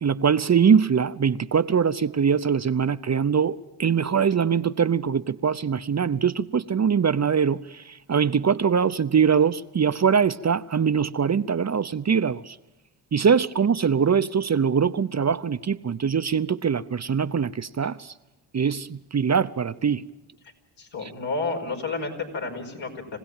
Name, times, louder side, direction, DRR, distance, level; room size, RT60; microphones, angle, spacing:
voice 1, 0.0-12.6 13.1-18.1 18.5-20.0 21.0-21.1, right 6 dB, 35° right, 0.8 m, -22 dB
voice 2, 20.8-23.2, left 3 dB, 70° left, 5.3 m, -31 dB
27.0 x 16.5 x 9.0 m
supercardioid pair, 50°, 47 cm